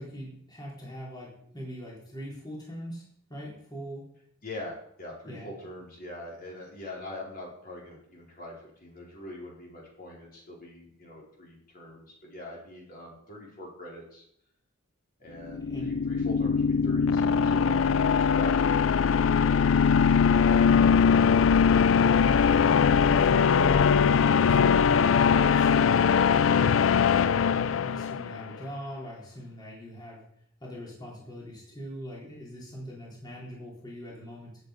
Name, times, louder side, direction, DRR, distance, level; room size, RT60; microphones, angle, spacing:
voice 1, 0.0-4.1 5.3-5.5 15.7-15.9 21.9-26.6 27.2-30.2 30.6-34.6, equal, 20° left, -4 dB, 3.9 m, -41 dB
voice 2, 4.4-14.2 15.2-19.1, left 1 dB, 45° left, -3 dB, 4.6 m, -43 dB
sound 1, 15.4-28.4, left 6 dB, 65° left, 0.4 m, -21 dB
17.5 x 8.2 x 5.1 m, 0.71 s
head